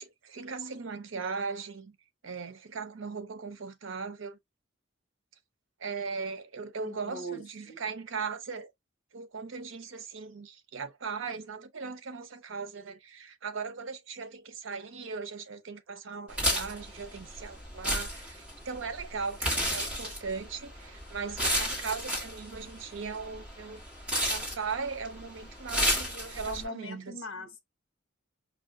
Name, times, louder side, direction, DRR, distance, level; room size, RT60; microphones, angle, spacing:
voice 1, 0.0-2.0 2.2-4.4 5.8-8.7 9.1-23.8 24.3-27.2, right 5 dB, 75° right, 0.6 m, -38 dB
voice 2, 6.8-7.8 26.5-27.6, equal, 80° left, 0.9 m, -41 dB
sound 1, 16.3-26.6, equal, 5° right, 1.4 m, -33 dB
4.7 x 2.3 x 2.5 m
head